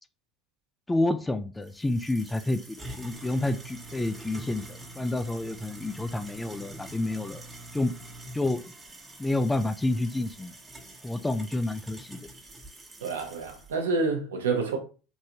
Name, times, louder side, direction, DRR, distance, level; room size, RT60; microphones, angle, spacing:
voice 1, 0.9-7.4 7.7-7.9 8.3-8.7 9.2-10.5 11.0-12.2, left 2 dB, 10° left, 0.3 m, -29 dB
sound 1, 1.7-13.7, right 2 dB, 20° right, 1.0 m, -45 dB
voice 2, 13.0-14.8, right 4 dB, 85° right, 0.7 m, -28 dB
3.2 x 2.6 x 2.8 m
hypercardioid pair, 85°, 0 cm